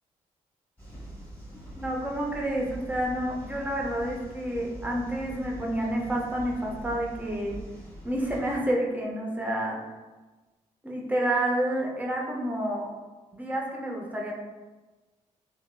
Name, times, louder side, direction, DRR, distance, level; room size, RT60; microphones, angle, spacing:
sound 1, 0.8-8.6, right 1 dB, 10° left, 1.4 m, -43 dB
voice 1, 1.8-7.6 8.0-9.8 10.8-12.9 13.3-14.3, right 1 dB, 10° right, -2 dB, 0.7 m, -29 dB
2.8 x 2.0 x 2.3 m, 1.2 s
hypercardioid pair, 45°, 17 cm